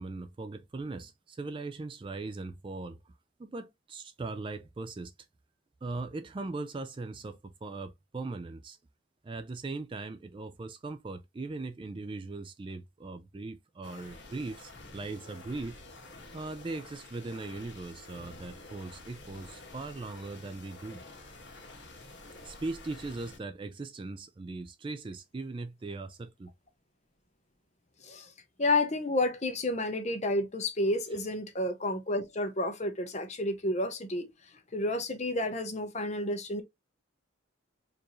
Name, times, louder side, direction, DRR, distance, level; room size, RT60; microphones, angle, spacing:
voice 1, 0.0-3.1 3.4-5.1 5.8-8.8 9.2-15.8 16.3-21.0 22.4-26.5, right 3 dB, 25° right, 0.3 m, -39 dB
sound 1, 13.8-23.4, left 2 dB, 60° left, 1.5 m, -49 dB
voice 2, 28.6-34.3 34.7-36.6, left 2 dB, 35° left, 0.8 m, -30 dB
4.5 x 2.6 x 2.9 m
head